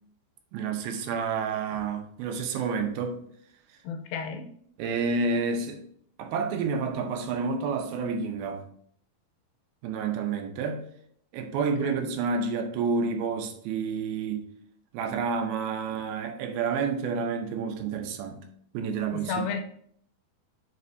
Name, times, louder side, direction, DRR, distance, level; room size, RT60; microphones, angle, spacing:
voice 1, 0.5-3.2 4.8-5.8 6.2-8.6 9.8-10.9 11.3-14.5 14.9-18.5 18.7-19.5, right 5 dB, 85° right, 2.7 m, -29 dB
voice 2, 3.8-4.5 11.6-11.9 19.1-19.6, left 5 dB, 80° left, 2.4 m, -33 dB
7.7 x 6.5 x 2.7 m
omnidirectional pair, 4.2 m